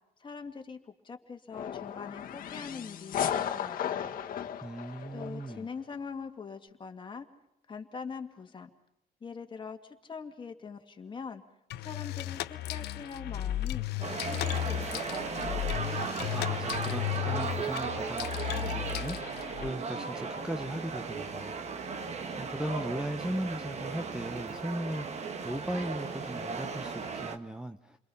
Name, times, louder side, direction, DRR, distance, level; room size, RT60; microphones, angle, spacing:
voice 1, 0.2-4.0 5.1-7.3 7.7-8.7 9.2-11.4 11.8-15.6, left 5 dB, 30° left, 5 dB, 2.2 m, -43 dB
sound 1, 1.5-5.6, left 9 dB, 55° left, 1.6 m, -35 dB
voice 2, 4.6-5.7 16.3-21.7 22.4-28.0, right 1 dB, 5° right, 7 dB, 0.9 m, -38 dB
sound 2, 11.7-19.7, left 15 dB, 80° left, 0.8 m, -35 dB
sound 3, 14.0-27.4, right 5 dB, 40° right, 1.7 m, -36 dB
29.5 x 22.0 x 5.6 m, 0.83 s
cardioid pair, 110°, 17 cm